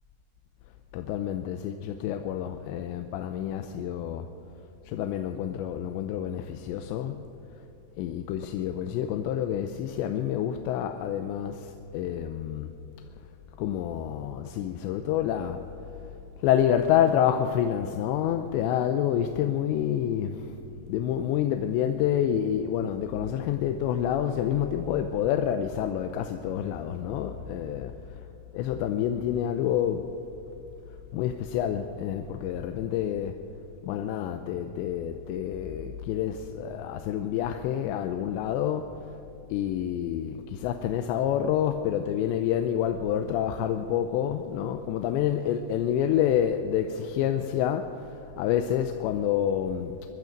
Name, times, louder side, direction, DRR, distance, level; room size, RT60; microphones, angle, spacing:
voice 1, 0.9-4.3 4.9-7.2 8.0-12.7 13.6-15.6 16.4-27.9 28.5-30.1 31.1-33.4 33.8-39.2 39.5-50.0, left 10 dB, 85° left, 6 dB, 2.9 m, -28 dB
22.5 x 12.0 x 5.2 m, 2.9 s
omnidirectional pair, 5.1 m